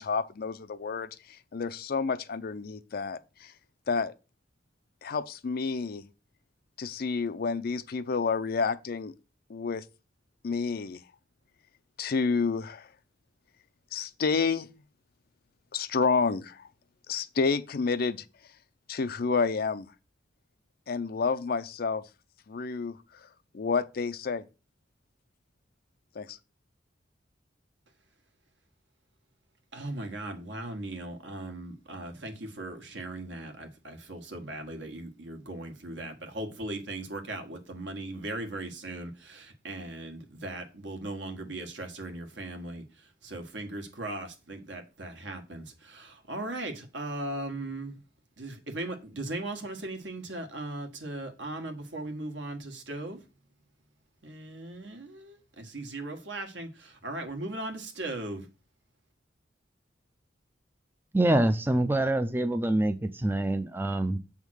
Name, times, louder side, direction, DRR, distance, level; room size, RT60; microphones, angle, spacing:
voice 1, 0.0-3.5 3.9-4.1 5.0-6.1 6.8-9.1 9.5-9.8 10.4-11.0 12.0-12.9 13.9-14.7 15.7-16.7 17.1-18.2 18.9-19.9 20.9-22.0 22.5-23.3 23.5-24.5 26.2-26.4, left 5 dB, 55° left, 0.5 m, -29 dB
voice 2, 29.7-48.0 48.4-53.2 54.2-58.5, right 2 dB, 70° right, 1.4 m, -38 dB
voice 3, 61.1-64.2, right 1 dB, 10° right, 0.4 m, -25 dB
7.4 x 3.6 x 6.2 m
head